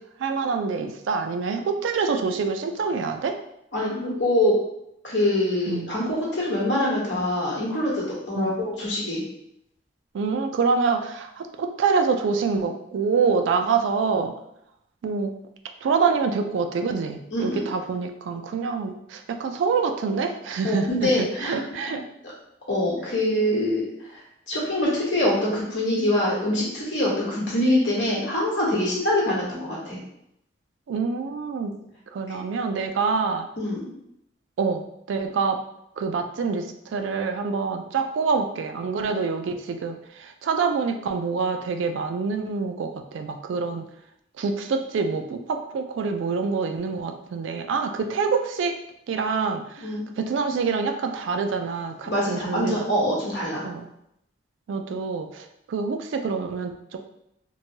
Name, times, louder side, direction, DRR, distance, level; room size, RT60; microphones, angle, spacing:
voice 1, 0.2-3.3 5.7-5.9 8.3-8.6 10.1-14.3 15.0-15.3 15.8-22.0 30.9-31.7 32.1-33.5 34.6-35.6 36.0-36.6 36.9-43.8 44.4-48.7 49.1-49.6 50.2-52.9 53.6-53.9 54.7-57.0, right 5 dB, 75° right, 6 dB, 0.3 m, -26 dB
voice 2, 3.7-4.6 5.0-9.2 17.3-17.6 20.6-21.6 22.7-23.9 24.1-24.2 24.5-30.0 32.3-32.4 33.6-33.9 49.8-50.1 52.1-53.7, left 1 dB, 65° left, -5 dB, 1.1 m, -24 dB
3.0 x 2.1 x 2.7 m, 0.78 s
head